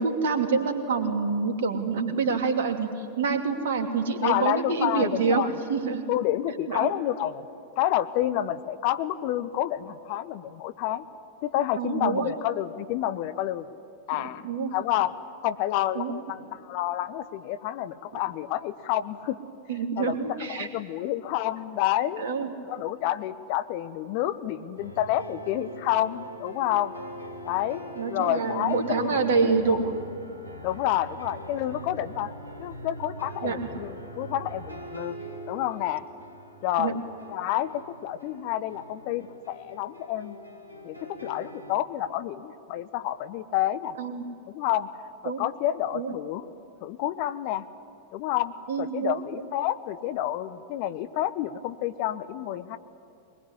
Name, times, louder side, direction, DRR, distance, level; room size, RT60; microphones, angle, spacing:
voice 1, 0.0-6.1 6.7-6.9 11.8-12.3 14.1-14.7 15.9-16.1 19.7-20.7 22.2-22.5 28.0-29.9 33.4-33.6 36.8-36.9 44.0-44.2 45.2-45.4 45.9-46.1 48.7-49.2, right 5 dB, 60° right, 5 dB, 2.7 m, -27 dB
voice 2, 4.2-5.5 6.1-7.5 7.8-11.0 11.4-13.7 14.1-14.4 14.7-15.1 15.4-19.4 20.0-22.3 22.7-26.9 27.4-27.8 28.1-29.8 30.6-32.3 32.6-35.2 35.5-36.0 36.6-37.0 37.3-40.4 40.8-43.9 44.5-44.9 45.2-46.5 46.8-47.6 48.1-52.8, left 13 dB, 45° left, 12 dB, 0.9 m, -29 dB
sound 1, 24.8-41.7, equal, 90° left, 2.0 m, -42 dB
23.0 x 21.0 x 10.0 m, 2.6 s
figure-of-eight pair, 90°, 0 cm